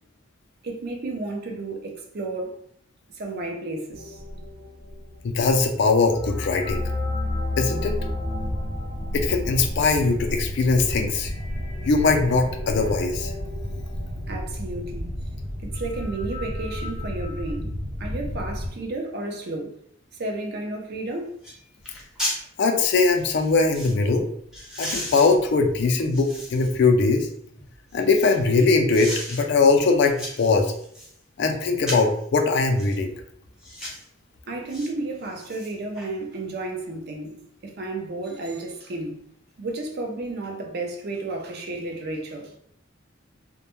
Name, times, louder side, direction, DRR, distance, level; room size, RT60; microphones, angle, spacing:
voice 1, 0.6-2.5 3.1-4.2 14.3-15.1 15.6-17.7 18.0-19.7 20.2-21.3 34.5-39.2 39.6-42.5, right 2 dB, 50° right, 2 dB, 0.5 m, -32 dB
sound 1, 3.9-17.5, left 2 dB, 75° left, 0.7 m, -34 dB
voice 2, 5.2-6.8 7.6-8.0 9.1-11.3 11.9-13.3 22.6-24.3 24.8-27.3 27.9-30.7 31.4-33.1, left 3 dB, 55° left, 4 dB, 0.3 m, -21 dB
sound 2, 8.0-18.7, equal, 90° right, 0.7 m, -33 dB
sound 3, 20.9-21.0 21.4-21.6 21.8-22.4 23.2-24.0 24.5-26.8 27.3-28.4 28.9-29.4 29.8-31.1 31.8-32.2 32.8-33.0 33.6-34.0 34.7-34.9 35.3-36.1 36.4-36.5, equal, 5° right, 0.6 m, -35 dB
2.2 x 2.1 x 2.9 m, 0.67 s
head